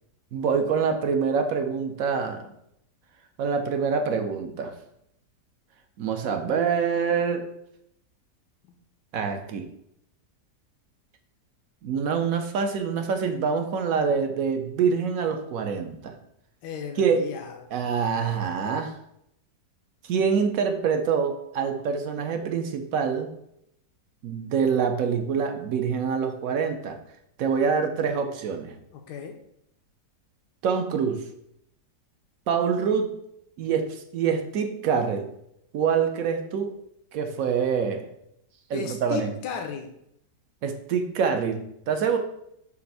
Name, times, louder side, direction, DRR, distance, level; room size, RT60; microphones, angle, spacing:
voice 1, 0.3-2.5 3.4-4.7 6.0-7.5 9.1-9.7 11.8-16.2 17.0-17.3 17.7-19.0 20.0-23.3 24.2-27.0 27.4-28.8 30.6-31.2 32.5-33.1 33.6-35.3 35.7-36.7 37.1-38.0 38.7-39.3 40.6-42.2, right 6 dB, 65° right, 6 dB, 1.0 m, -25 dB
voice 2, 16.6-17.6 28.9-29.4 38.7-39.9, left 7 dB, 85° left, 3 dB, 1.3 m, -35 dB
6.8 x 2.5 x 5.4 m, 0.76 s
omnidirectional pair, 1.8 m